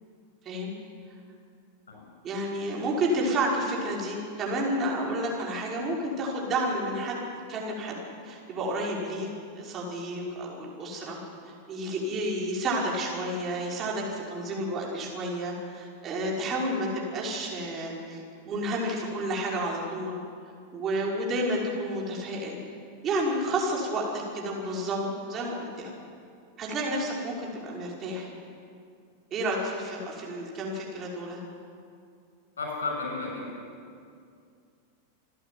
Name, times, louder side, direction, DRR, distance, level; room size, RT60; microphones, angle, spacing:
voice 1, 2.2-7.2 7.5-8.0 8.2-9.3 9.5-11.2 11.7-20.2 20.7-22.6 23.0-25.9 26.6-28.3 29.3-31.4, right 1 dB, 30° right, -2 dB, 5.7 m, -30 dB
voice 2, 32.6-33.6, left 3 dB, 70° left, 0 dB, 6.8 m, -33 dB
27.5 x 11.0 x 9.5 m, 2.4 s
figure-of-eight pair, 90°, 0 cm